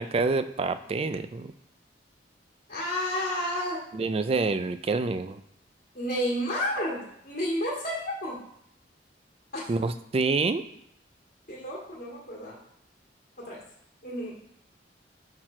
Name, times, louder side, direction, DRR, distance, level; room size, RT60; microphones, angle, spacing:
voice 1, 0.0-1.5 3.9-5.4 9.7-10.6, right 3 dB, 30° right, 11 dB, 0.3 m, -27 dB
voice 2, 2.7-3.8 5.9-8.4 9.5-9.7 11.5-12.6 13.4-13.6 14.0-14.3, equal, 50° left, -7 dB, 1.8 m, -31 dB
5.9 x 4.6 x 4.3 m, 0.74 s
head